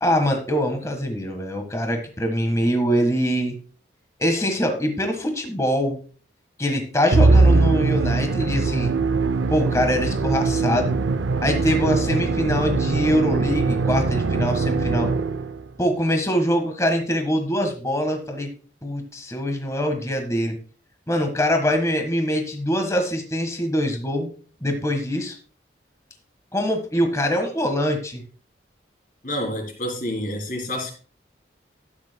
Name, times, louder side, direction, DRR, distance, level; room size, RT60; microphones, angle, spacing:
voice 1, 0.0-3.5 4.2-6.0 6.6-8.9 9.5-10.9 11.4-15.1 15.8-18.5 18.8-20.6 21.1-24.3 24.6-25.3 26.5-28.2, equal, 15° left, 1.5 m, -23 dB
Musical instrument, 7.1-15.6, right 3 dB, 90° right, 0.6 m, -21 dB
voice 2, 29.2-30.9, left 1 dB, 45° left, 3.5 m, -28 dB
13.0 x 9.7 x 2.2 m
head